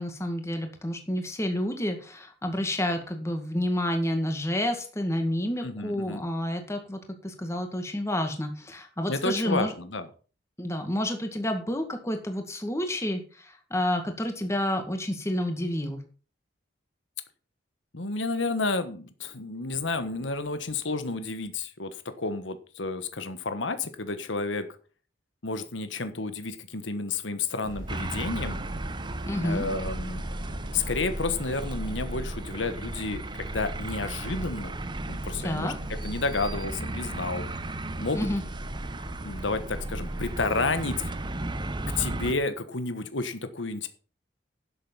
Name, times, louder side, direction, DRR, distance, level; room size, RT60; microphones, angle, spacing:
voice 1, 0.0-9.7 10.6-16.0 29.3-29.7 35.4-35.7 38.1-38.4, left 1 dB, 15° left, 5 dB, 1.9 m, -29 dB
voice 2, 5.6-6.2 9.1-10.1 17.9-24.7 25.4-28.6 29.4-30.2 30.7-34.8 35.1-35.7 36.0-37.4 38.0-38.3 39.2-41.0 42.0-43.9, left 3 dB, 80° left, 10 dB, 1.4 m, -31 dB
sound 1, 27.6-42.2, right 1 dB, 45° right, 2.2 m, -40 dB
sound 2, 27.9-42.3, right 2 dB, 25° right, 0.8 m, -35 dB
12.0 x 7.7 x 5.5 m, 0.38 s
head